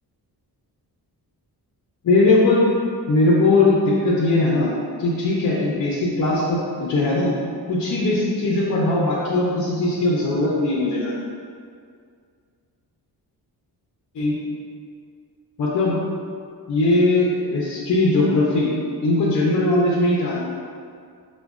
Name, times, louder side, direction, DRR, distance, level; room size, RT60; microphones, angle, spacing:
voice 1, 2.0-2.6 3.1-4.7 5.0-7.3 7.7-11.1 14.1-14.4 15.6-16.0 16.7-18.7 19.0-20.4, left 2 dB, 50° left, -5 dB, 0.5 m, -19 dB
4.9 x 2.2 x 2.3 m, 2.2 s
wide cardioid pair, 165°, 39 cm